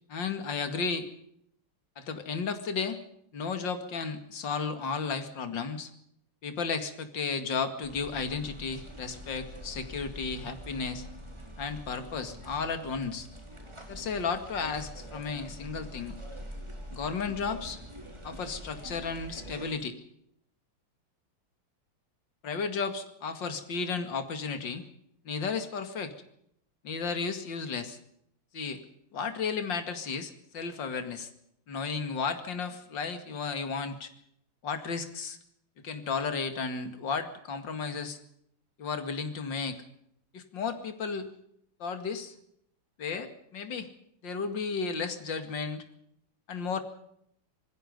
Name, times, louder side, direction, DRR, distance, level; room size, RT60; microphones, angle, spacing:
voice 1, 0.1-1.1 2.0-3.0 3.3-5.9 6.4-11.0 11.6-13.3 13.9-16.1 16.9-17.8 18.2-20.0 22.4-24.8 25.2-26.1 26.8-28.0 28.5-28.8 29.1-31.3 31.7-34.1 34.6-35.4 35.8-38.2 38.8-39.8 40.3-41.3 41.8-42.3 43.0-43.9 44.2-45.8 46.5-46.8, left 5 dB, 55° left, 8 dB, 2.8 m, -33 dB
sound 1, 7.8-19.7, equal, 10° right, 4.5 m, -45 dB
27.0 x 20.0 x 5.3 m, 0.70 s
omnidirectional pair, 2.4 m